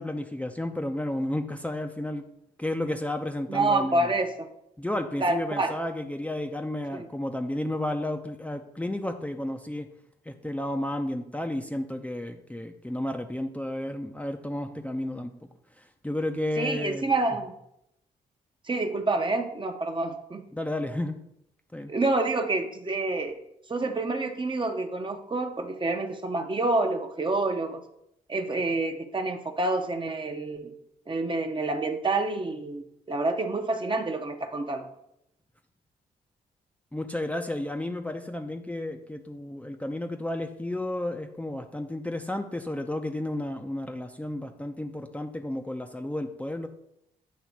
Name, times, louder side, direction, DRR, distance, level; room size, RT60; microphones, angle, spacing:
voice 1, 0.0-2.2 2.6-4.1 4.8-9.9 10.3-15.3 15.8-17.1 20.5-21.2 21.7-21.9 36.9-46.7, left 1 dB, 10° left, 4 dB, 0.7 m, -32 dB
voice 2, 3.5-4.5 5.2-5.8 6.9-7.1 16.6-17.5 18.7-20.4 21.9-23.4 23.7-27.8 28.3-30.7 31.1-34.9, right 2 dB, 30° right, 5 dB, 1.0 m, -28 dB
8.4 x 3.0 x 6.0 m, 0.78 s
supercardioid pair, 60°, 16 cm